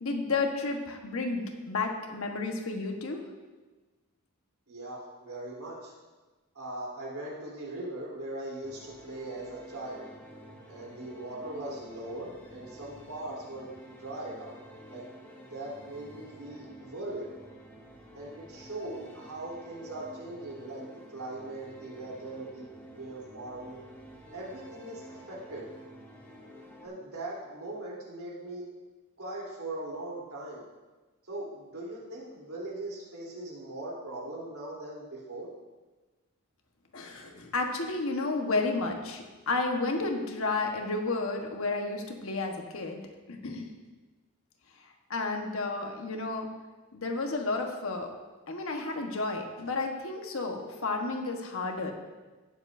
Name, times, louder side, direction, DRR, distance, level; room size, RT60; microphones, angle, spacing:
voice 1, 0.0-3.2 36.9-43.0 43.3-43.7 44.8-46.5 46.9-48.1 48.5-51.9, left 3 dB, 65° left, 2 dB, 1.2 m, -32 dB
voice 2, 4.7-5.9 6.5-10.1 10.7-14.6 14.9-15.0 15.3-17.3 18.1-22.7 22.9-23.8 24.3-25.7 26.8-28.6 29.2-30.6 31.3-35.5, right 2 dB, 75° right, -5 dB, 3.3 m, -40 dB
sound 1, 8.6-26.9, equal, 10° left, 1.2 m, -50 dB
17.5 x 7.1 x 2.6 m, 1.2 s
head